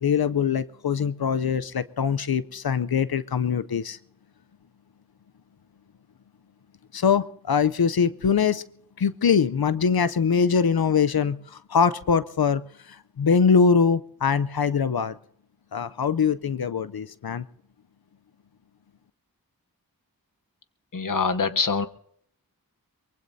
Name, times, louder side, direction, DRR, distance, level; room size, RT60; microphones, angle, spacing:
voice 1, 0.0-4.0 6.9-8.6 9.0-15.2 15.7-17.5, left 6 dB, 80° left, 14 dB, 0.6 m, -23 dB
voice 2, 20.9-21.9, left 5 dB, 60° left, 10 dB, 1.0 m, -24 dB
23.5 x 23.0 x 2.7 m, 0.68 s
wide cardioid pair, 45°, 36 cm